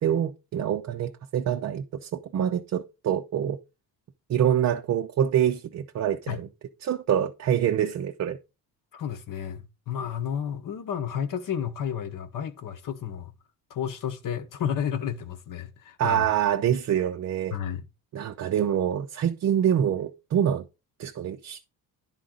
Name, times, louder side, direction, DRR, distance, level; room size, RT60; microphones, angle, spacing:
voice 1, 0.0-3.6 4.3-6.5 6.8-8.4 16.0-17.6 18.1-20.7 21.0-21.7, right 9 dB, 40° right, 0.5 m, -25 dB
voice 2, 8.9-13.3 13.7-16.3 17.5-17.8, left 8 dB, 55° left, 1.0 m, -32 dB
10.5 x 3.8 x 3.7 m
cardioid pair, 95°, 40 cm